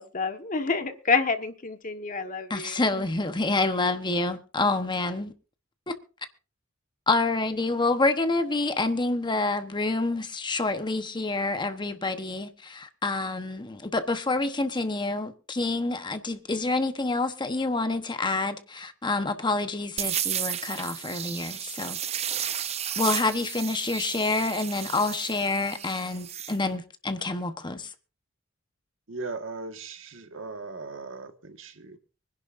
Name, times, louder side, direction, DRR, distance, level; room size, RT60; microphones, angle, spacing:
voice 1, 0.0-3.0, left 4 dB, 40° left, 1.4 m, -28 dB
voice 2, 2.5-5.3 5.9-6.0 7.1-22.0 23.0-27.9, left 3 dB, 25° left, 1.0 m, -27 dB
sound 1, 20.0-26.6, right 10 dB, 30° right, 0.6 m, -33 dB
voice 3, 29.1-32.0, right 3 dB, 70° right, 1.7 m, -38 dB
24.5 x 11.0 x 2.6 m
head